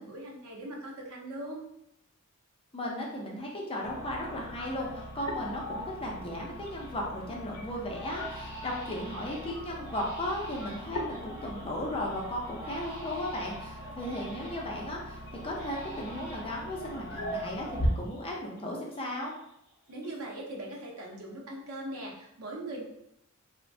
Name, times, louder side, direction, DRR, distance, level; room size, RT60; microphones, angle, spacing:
voice 1, 0.0-1.6 19.9-22.8, right 1 dB, 85° right, -1 dB, 0.7 m, -40 dB
voice 2, 2.7-19.3, left 1 dB, 25° left, -2 dB, 0.5 m, -36 dB
sound 1, 3.8-17.9, equal, 90° left, 0.6 m, -39 dB
Crying sobbing, 5.7-5.8 6.2-7.0 7.3-7.5 7.9-14.8 15.3-18.6 18.9-20.4 20.7-21.2, right 1 dB, 45° right, 1.5 m, -47 dB
3.0 x 2.1 x 2.6 m, 0.78 s
head